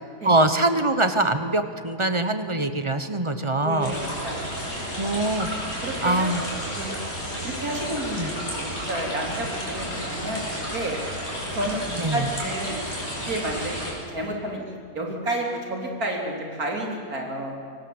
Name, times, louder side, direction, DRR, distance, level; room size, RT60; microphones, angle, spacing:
voice 1, 0.2-4.0 5.0-5.5 6.0-6.4 8.2-8.3 12.0-12.3, right 2 dB, 20° right, 9 dB, 1.0 m, -23 dB
voice 2, 3.6-4.5 5.8-6.3 6.7-6.9 7.4-11.0 11.5-11.8 12.1-12.8 13.3-13.8 14.1-17.5, right 1 dB, 65° right, 1 dB, 4.2 m, -30 dB
sound 1, 3.8-13.9, equal, 45° left, 6.4 m, -32 dB
25.0 x 18.5 x 8.0 m, 2.4 s
omnidirectional pair, 1.7 m